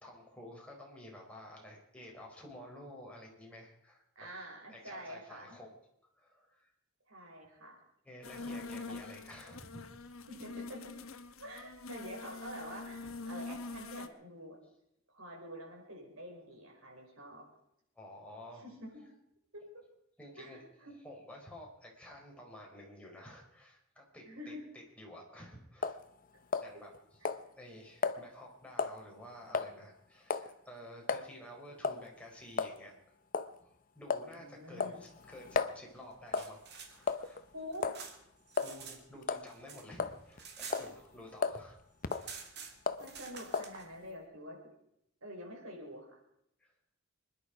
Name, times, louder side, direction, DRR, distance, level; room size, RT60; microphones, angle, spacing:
voice 1, 0.0-4.0 4.7-5.7 6.2-6.7 8.0-9.9 18.0-18.6 20.2-20.6 21.0-24.5 25.0-26.0 26.6-26.9 27.6-32.9 33.6-36.6 36.9-37.4 38.6-41.8 42.1-42.5 46.6-46.7, left 1 dB, 5° left, -2 dB, 4.0 m, -51 dB
voice 2, 4.2-5.6 7.1-7.8 8.4-9.0 10.3-11.0 11.4-14.6 15.1-17.5 18.5-19.1 19.5-19.8 20.4-20.9 24.2-24.6 27.2-27.3 34.3-35.0 37.5-37.8 43.0-44.6 45.2-46.2, equal, 80° right, -1 dB, 5.7 m, -47 dB
sound 1, 8.2-14.1, left 3 dB, 80° left, 1.1 m, -45 dB
sound 2, 25.8-26.0 26.5-27.0 27.2-27.4 28.0-28.2 28.8-29.0 29.5-29.7 30.3-30.5 31.1-31.2 31.8-32.0 32.6-32.7 33.3-33.5 34.1-34.3 34.8-35.8 36.3-36.6 37.1-37.4 37.8-38.0 38.6-38.7 39.2-39.5 40.0-40.4 40.7-40.9 41.4-41.6 42.0-42.3 42.9-43.1 43.5-43.7, left 4 dB, 40° left, 0.7 m, -33 dB
sound 3, 36.1-39.0 39.3-41.4 41.7-41.8 42.0-43.9, right 6 dB, 55° right, 2.4 m, -49 dB
26.0 x 11.0 x 4.9 m, 0.77 s
head